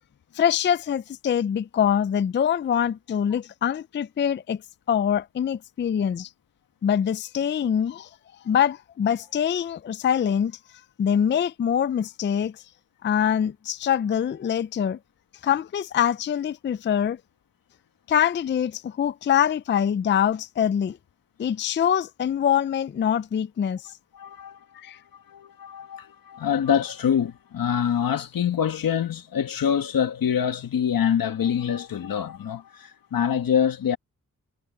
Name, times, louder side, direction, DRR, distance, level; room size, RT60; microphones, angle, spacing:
voice 1, 0.3-4.6 4.9-6.3 6.8-8.1 8.4-10.6 11.0-12.6 13.0-15.0 15.4-17.2 18.1-21.0 21.4-23.9 24.7-25.0, left 9 dB, 35° left, 0.4 m, -24 dB
voice 2, 24.1-24.8 25.1-34.0, left 8 dB, 85° left, 1.7 m, -25 dB
wide cardioid pair, 95°, 33 cm